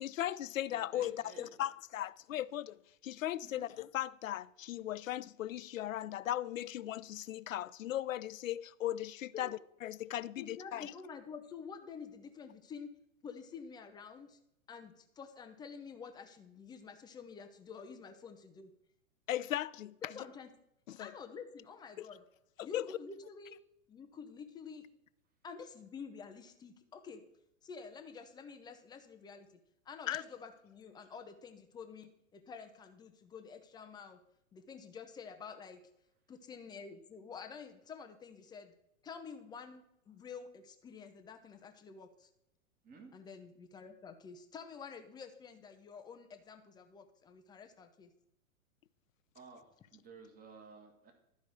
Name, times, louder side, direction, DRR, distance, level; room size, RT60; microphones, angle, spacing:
voice 1, 0.0-2.8 3.0-10.9 19.3-19.9 20.9-21.1 22.0-22.1 22.6-22.9 30.1-30.2, left 12 dB, 70° left, 0.5 m, -37 dB
voice 2, 0.7-1.5 3.5-3.7 42.8-43.1 49.3-49.6 49.9-51.1, right 4 dB, 20° right, 1.9 m, -54 dB
voice 3, 10.4-12.9 13.2-14.4 14.7-18.7 20.0-20.5 20.9-22.2 22.6-23.6 23.9-24.8 25.4-27.2 27.6-29.6 29.9-34.2 34.5-35.8 36.3-38.7 39.0-42.3 43.1-48.1, left 5 dB, 10° left, 0.5 m, -49 dB
12.0 x 5.2 x 6.3 m
figure-of-eight pair, 105°, 42 cm